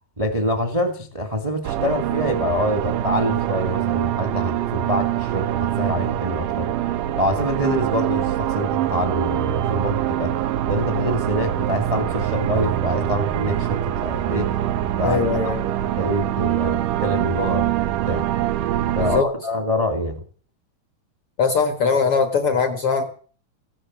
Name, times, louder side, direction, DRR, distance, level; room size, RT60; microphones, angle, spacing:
voice 1, 0.2-6.7 7.1-10.3 10.7-14.5 15.0-17.7 18.1-18.3 18.9-20.2, equal, 15° right, 1.1 m, -25 dB
sound 1, 1.6-19.2, right 12 dB, 70° right, 2.3 m, -24 dB
voice 2, 15.0-15.6 19.0-19.3 21.4-23.0, left 5 dB, 50° left, 1.9 m, -20 dB
16.0 x 12.0 x 7.4 m
omnidirectional pair, 4.2 m